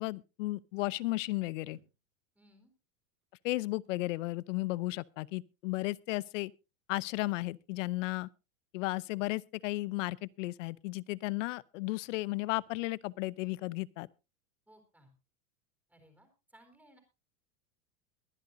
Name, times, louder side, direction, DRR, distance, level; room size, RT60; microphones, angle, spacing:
voice 1, 0.0-1.8 3.4-6.5 6.9-8.3 8.7-14.1, left 20 dB, 65° left, 0.7 m, -34 dB
sound 1, 1.7-2.1 3.0-4.2 5.8-6.1, right 9 dB, 85° right, 4.1 m, -67 dB
voice 2, 2.4-2.7 14.7-15.1 15.9-17.0, equal, 5° right, 3.7 m, -61 dB
23.0 x 10.5 x 2.7 m
supercardioid pair, 150°, 40 cm